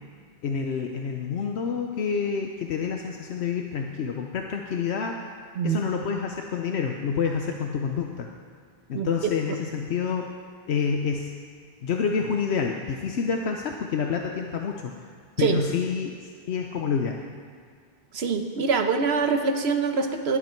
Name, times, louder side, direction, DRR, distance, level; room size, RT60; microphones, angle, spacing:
voice 1, 0.4-5.2 5.6-8.3 8.9-10.3 10.7-11.3 11.8-14.9 15.4-17.2, left 6 dB, 75° left, 2 dB, 1.0 m, -28 dB
voice 2, 18.1-20.4, right 5 dB, 75° right, 6 dB, 1.2 m, -24 dB
20.0 x 8.3 x 4.5 m, 2.1 s
omnidirectional pair, 1.1 m